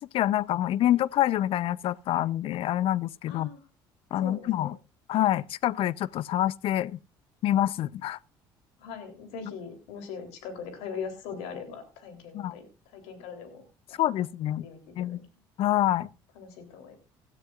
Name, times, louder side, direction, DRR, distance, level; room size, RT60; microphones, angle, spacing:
voice 1, 0.0-3.5 4.1-4.8 5.1-7.0 7.4-8.2 12.3-12.6 14.0-14.7 15.0-15.2 15.6-16.1, left 13 dB, 65° left, 0.6 m, -26 dB
voice 2, 3.3-3.6 4.2-4.7 8.8-12.7 12.9-14.3 14.6-15.2 16.3-17.0, left 6 dB, 80° left, 3.4 m, -41 dB
18.0 x 13.0 x 2.4 m
supercardioid pair, 75°, 11 cm